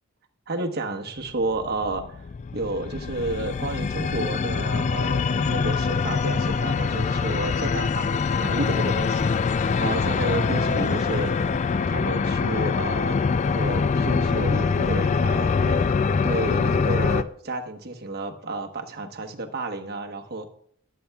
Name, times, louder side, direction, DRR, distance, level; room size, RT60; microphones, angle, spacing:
voice 1, 0.5-2.2 2.5-9.3 9.8-11.3 11.9-13.2 13.5-15.9 16.2-20.5, right 2 dB, 50° right, 4 dB, 1.1 m, -31 dB
sound 1, 1.3-17.2, left 5 dB, 35° left, 0.3 m, -24 dB
20.5 x 8.5 x 2.3 m, 0.64 s
head